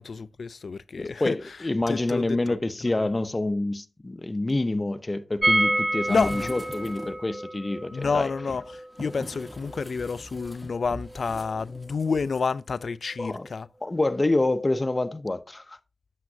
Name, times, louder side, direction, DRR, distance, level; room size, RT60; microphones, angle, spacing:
voice 1, 0.0-2.6 3.0-3.1 6.1-6.6 7.9-13.7, left 5 dB, 70° left, 0.3 m, -29 dB
voice 2, 1.0-8.3 13.2-13.5 13.8-15.8, left 2 dB, 30° left, 0.6 m, -27 dB
sound 1, 5.4-11.2 11.4-11.5 11.8-11.9, right 1 dB, 20° right, 0.5 m, -29 dB
sound 2, 6.0-7.3 7.9-12.5 12.8-12.9, equal, ahead, 1.1 m, -43 dB
8.4 x 7.4 x 2.7 m
cardioid pair, 45°, 0 cm